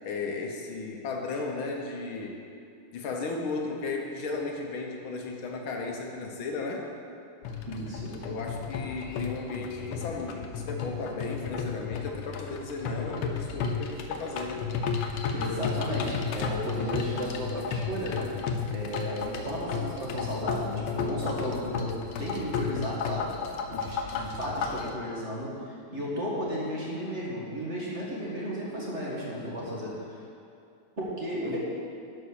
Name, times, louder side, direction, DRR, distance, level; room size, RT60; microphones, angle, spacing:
voice 1, 0.0-2.4 2.9-6.9 8.2-14.6 15.0-15.1 31.4-31.6, left 3 dB, 70° left, 1 dB, 1.7 m, -35 dB
sound 1, 7.4-24.9, left 6 dB, 90° left, 1.7 m, -33 dB
voice 2, 7.7-8.3 15.3-18.4 18.7-21.9 22.2-23.3 23.7-30.3 31.0-31.6, equal, 35° right, -5 dB, 1.7 m, -34 dB
11.5 x 5.5 x 6.5 m, 2.5 s
omnidirectional pair, 2.4 m